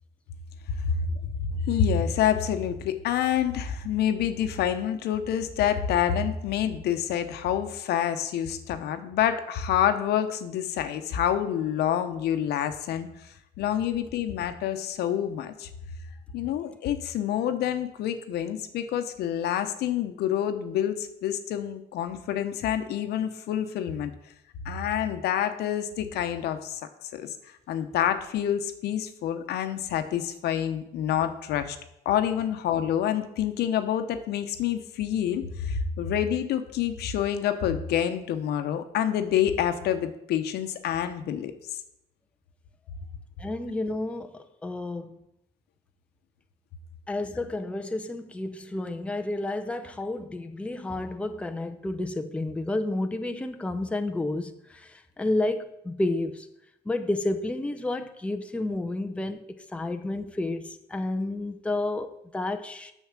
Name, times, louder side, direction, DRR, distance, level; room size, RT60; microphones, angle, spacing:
voice 1, 0.8-13.1 13.6-15.7 16.3-24.1 24.6-26.8 27.1-27.3 27.7-31.8 32.0-41.5, left 9 dB, 75° left, 1.0 m, -27 dB
voice 2, 43.4-45.2 47.1-56.5 56.9-62.9, left 2 dB, 5° left, 0.7 m, -31 dB
7.2 x 6.3 x 7.4 m
cardioid pair, 110°, 17 cm